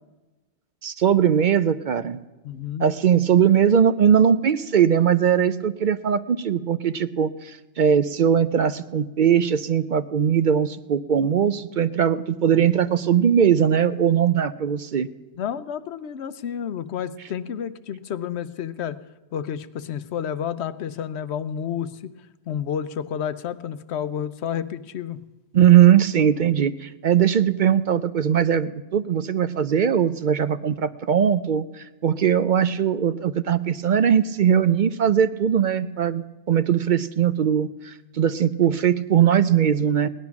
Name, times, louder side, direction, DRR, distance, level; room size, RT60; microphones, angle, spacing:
voice 1, 0.8-2.2 2.8-15.1 25.5-40.1, right 8 dB, 55° right, 14 dB, 0.6 m, -20 dB
voice 2, 2.4-2.9 12.5-12.6 15.4-19.0 19.3-22.1 22.5-25.2, left 8 dB, 85° left, 14 dB, 1.0 m, -30 dB
18.0 x 10.5 x 5.9 m, 1.2 s
omnidirectional pair, 1.1 m